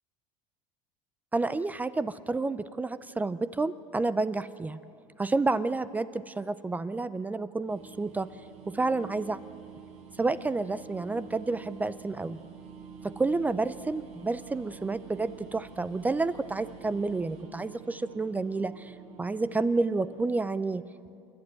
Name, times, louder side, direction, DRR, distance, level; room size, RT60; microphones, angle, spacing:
voice 1, 1.3-4.8 5.2-8.3 8.7-9.4 10.2-12.4 13.0-20.8, right 3 dB, 10° right, 14 dB, 0.4 m, -30 dB
sound 1, 7.7-20.5, right 7 dB, 55° right, 4.2 m, -48 dB
28.0 x 11.5 x 9.6 m, 2.6 s
cardioid pair, 130°, 13 cm